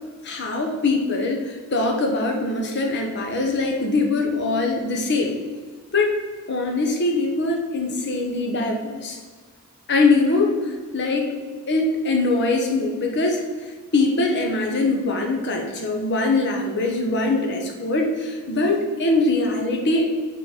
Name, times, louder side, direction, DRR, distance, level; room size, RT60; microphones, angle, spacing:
voice 1, 0.2-5.4 5.9-6.1 6.5-9.2 9.9-10.6 10.9-11.3 11.7-13.4 13.9-20.1, left 3 dB, 50° left, 2 dB, 1.0 m, -22 dB
6.3 x 4.0 x 4.9 m, 1.5 s
head